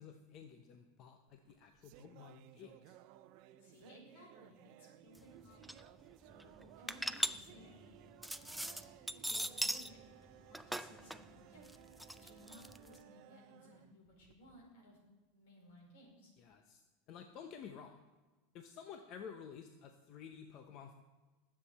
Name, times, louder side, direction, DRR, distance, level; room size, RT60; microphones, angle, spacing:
voice 1, 0.0-3.0 16.4-16.8 17.1-18.0 18.5-20.9, left 7 dB, 40° left, 6 dB, 0.8 m, -52 dB
sound 1, 1.3-14.7, right 12 dB, 50° right, 0.6 m, -60 dB
voice 2, 3.6-5.6 6.3-7.9 8.3-8.8 9.1-11.9 12.1-15.0 15.3-16.3, left 1 dB, 70° left, 0 dB, 4.9 m, -60 dB
sound 2, 5.1-5.2 5.4-5.8 6.3-9.9 10.3-13.0, equal, ahead, 0.4 m, -40 dB
19.0 x 7.6 x 4.3 m, 1.3 s
supercardioid pair, 145°, 0 cm